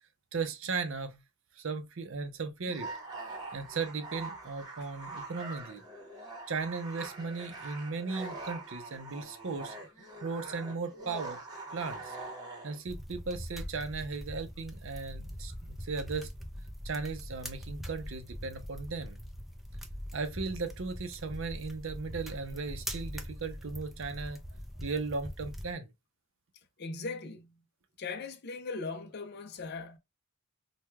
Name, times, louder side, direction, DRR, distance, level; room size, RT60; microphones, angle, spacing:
voice 1, 0.3-1.2 1.6-2.9 3.5-5.8 6.5-9.8 10.2-11.4 11.7-12.2 12.6-16.3 16.8-19.2 20.1-24.4 24.8-25.9, right 4 dB, 65° right, 0.6 m, -36 dB
sound 1, 2.6-12.8, right 2 dB, 20° right, 1.0 m, -43 dB
sound 2, 12.9-25.7, equal, ahead, 0.4 m, -42 dB
voice 2, 26.8-27.6 28.0-30.0, left 4 dB, 50° left, 0.5 m, -39 dB
4.5 x 2.2 x 2.2 m
head